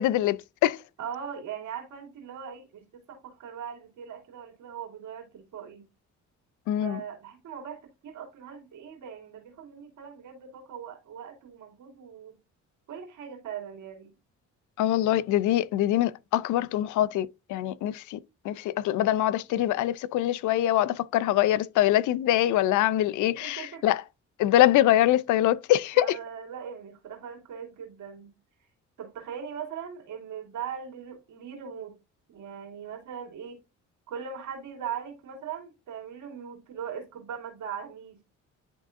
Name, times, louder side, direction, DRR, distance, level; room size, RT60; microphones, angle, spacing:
voice 1, 0.0-0.8 6.7-7.0 14.8-18.2 18.4-24.0 24.4-26.1, left 13 dB, 75° left, 0.5 m, -24 dB
voice 2, 1.0-5.9 6.8-12.4 12.9-14.1 19.6-19.7 23.4-23.8 25.9-28.3 29.0-31.9 32.3-33.6 34.1-38.2, right 7 dB, 85° right, 2.7 m, -40 dB
10.5 x 3.6 x 2.5 m
cardioid pair, 90°, 30 cm